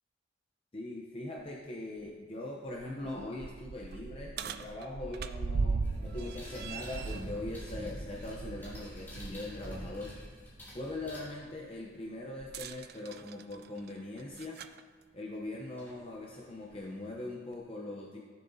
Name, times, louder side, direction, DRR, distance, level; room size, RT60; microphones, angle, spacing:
voice 1, 0.7-10.1 10.7-14.6 15.1-18.2, left 2 dB, 30° left, -1 dB, 0.7 m, -41 dB
sound 1, 1.4-1.5 2.0-2.1 2.7-9.4 9.8-10.0 12.4-14.8 15.8-15.9 16.7-16.8, right 4 dB, 50° right, 0.3 m, -38 dB
sound 2, 5.8-11.8 14.3-14.4 15.8-16.0 16.4-17.3, equal, 10° left, 2.6 m, -45 dB
15.5 x 6.8 x 2.7 m, 1.5 s
head